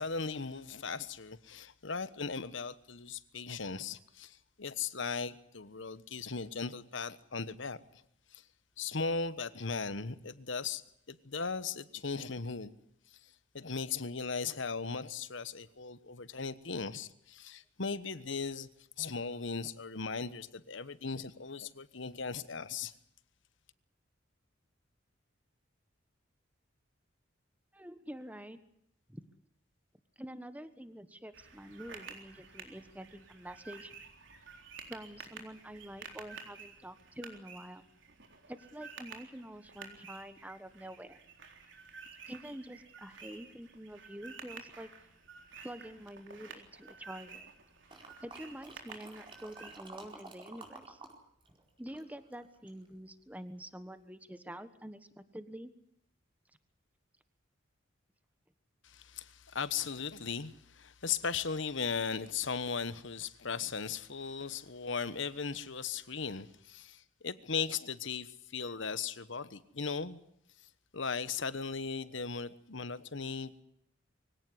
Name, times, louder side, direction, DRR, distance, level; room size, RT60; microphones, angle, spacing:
voice 1, 0.0-8.0 8.3-8.4 8.8-10.8 11.1-12.7 13.1-18.7 19.0-22.9 58.8-70.2 70.9-73.6, left 5 dB, 70° left, 1.2 m, -38 dB
voice 2, 27.7-28.6 29.1-29.2 30.2-33.9 34.9-37.8 38.5-41.2 42.3-44.9 45.6-47.5 48.2-51.0 51.8-55.7, right 1 dB, 10° right, 1.3 m, -47 dB
sound 1, 31.3-49.8, right 5 dB, 65° right, 3.9 m, -51 dB
sound 2, 47.9-51.1 51.4-52.9 53.4-53.5, right 3 dB, 25° right, 4.6 m, -51 dB
24.0 x 17.5 x 9.9 m
head